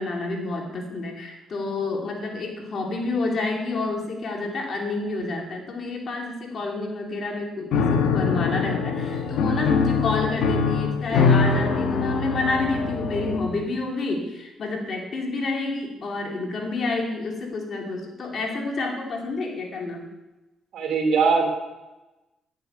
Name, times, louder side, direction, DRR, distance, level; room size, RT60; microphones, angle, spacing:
voice 1, 0.0-20.1, left 3 dB, 50° left, 0 dB, 2.9 m, -29 dB
Piano, 7.7-13.6, left 5 dB, 80° left, 1.2 m, -23 dB
voice 2, 20.7-21.5, right 5 dB, 75° right, 3 dB, 2.8 m, -21 dB
10.5 x 9.6 x 5.6 m, 1.0 s
cardioid pair, 90°, 0 cm